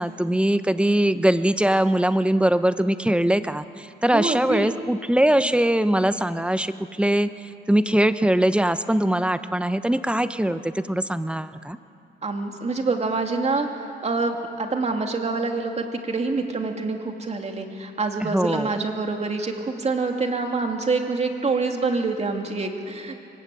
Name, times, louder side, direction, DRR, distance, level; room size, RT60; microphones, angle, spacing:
voice 1, 0.0-7.3 7.7-11.8 18.2-18.7, right 1 dB, 5° right, 12 dB, 0.8 m, -22 dB
voice 2, 4.1-4.8 12.2-13.7 14.0-23.1, right 3 dB, 35° right, 3 dB, 2.8 m, -26 dB
23.0 x 19.5 x 8.6 m, 2.6 s
cardioid pair, 90°, 20 cm